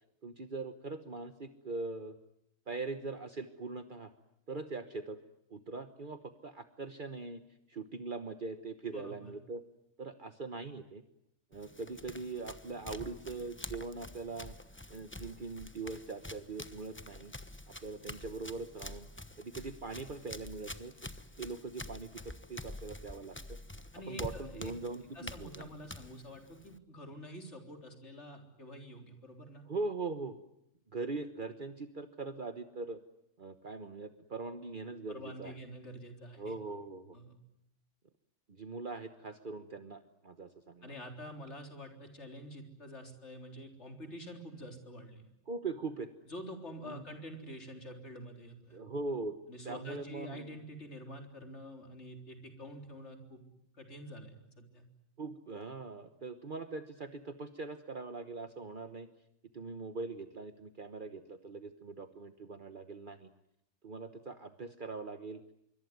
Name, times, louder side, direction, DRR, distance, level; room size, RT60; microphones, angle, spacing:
voice 1, 0.2-2.2 2.7-4.1 4.5-5.2 5.5-7.4 7.7-9.6 10.0-11.0 11.5-14.5 14.9-17.3 17.8-19.1 19.4-20.9 21.4-23.6 24.1-25.7 29.7-30.4 30.9-33.0 33.4-35.5 36.4-37.2 38.5-41.0 45.5-46.1 46.8-47.0 48.7-49.4 49.6-50.6 55.2-59.1 59.5-63.3 63.8-65.4, right 3 dB, 50° right, 9 dB, 1.3 m, -41 dB
voice 2, 8.9-9.3 23.9-24.7 25.1-29.6 35.1-36.5 37.1-37.4 40.8-45.3 46.3-48.8 49.5-53.4 53.7-54.8, equal, 80° left, 4 dB, 4.2 m, -47 dB
Run, 11.5-26.8, left 1 dB, 10° left, 1.0 m, -47 dB
25.5 x 24.0 x 9.5 m, 0.80 s
omnidirectional pair, 1.2 m